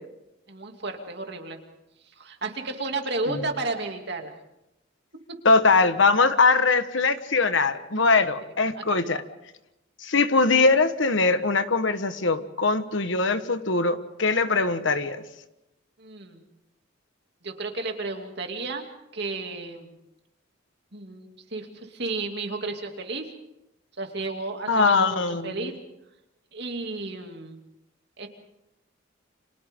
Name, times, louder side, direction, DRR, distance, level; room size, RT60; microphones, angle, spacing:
voice 1, 0.5-1.6 2.2-4.3 5.3-5.4 7.9-8.0 8.8-9.0 16.0-16.4 17.4-18.9 19.1-19.9 20.9-23.3 24.0-25.7 26.5-27.6 28.2-28.3, right 3 dB, 55° right, 3 dB, 2.7 m, -33 dB
voice 2, 5.4-9.2 10.0-15.2 24.7-25.7, left 3 dB, 65° left, 10 dB, 1.3 m, -22 dB
30.0 x 26.5 x 3.8 m, 0.89 s
head